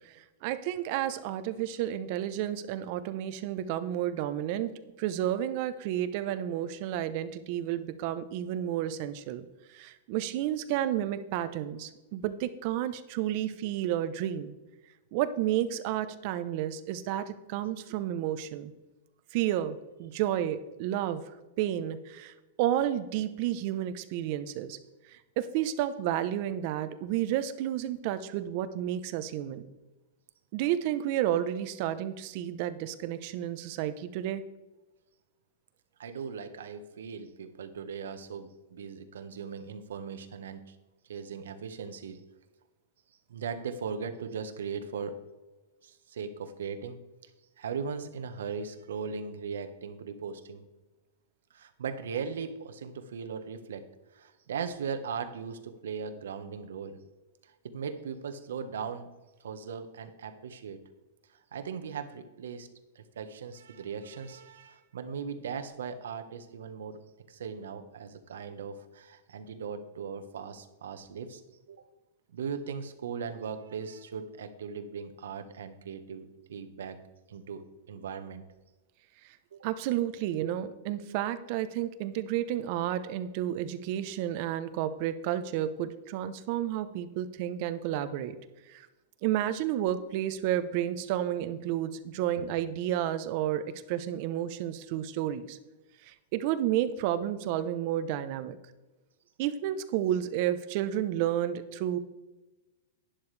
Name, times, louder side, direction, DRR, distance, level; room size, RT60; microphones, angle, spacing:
voice 1, 0.0-14.6 15.1-18.7 19.3-21.2 21.6-24.8 25.1-29.7 30.5-34.4 79.6-88.4 88.7-88.9 89.2-95.6 96.0-98.6 99.4-102.0, right 11 dB, 45° right, 12 dB, 0.8 m, -31 dB
voice 2, 36.0-40.8 41.1-42.2 43.3-45.2 45.8-47.0 47.6-50.6 51.5-53.9 54.1-57.0 57.4-59.1 59.4-60.8 61.3-62.7 62.9-67.0 67.3-71.4 71.7-71.8 72.3-77.0 77.3-78.4 79.5-79.7 92.4-92.5, right 6 dB, 90° right, 8 dB, 1.3 m, -38 dB
11.5 x 10.0 x 3.4 m, 1.1 s
supercardioid pair, 150°, 0 cm